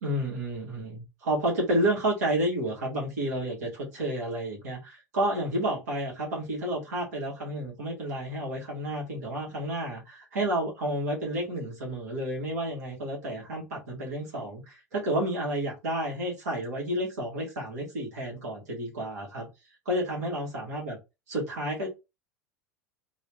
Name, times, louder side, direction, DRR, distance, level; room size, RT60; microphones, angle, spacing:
voice 1, 0.0-19.5 19.8-21.0 21.3-21.9, right 1 dB, 65° right, 1.7 m, -30 dB
3.2 x 2.8 x 3.1 m
figure-of-eight pair, 80°, 9 cm